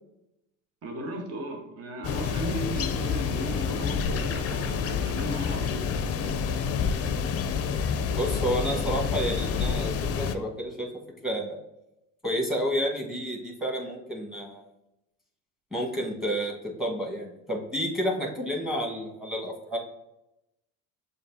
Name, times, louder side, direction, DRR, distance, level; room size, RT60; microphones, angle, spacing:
voice 1, 0.8-6.1, right 1 dB, 40° right, 2 dB, 1.0 m, -36 dB
sound 1, 2.0-10.3, left 6 dB, 40° left, 0.5 m, -28 dB
voice 2, 8.2-10.9 11.2-11.6 12.2-14.6 15.7-19.8, equal, ahead, 0 dB, 1.3 m, -30 dB
7.0 x 2.6 x 2.7 m, 0.88 s
hypercardioid pair, 75°, 38 cm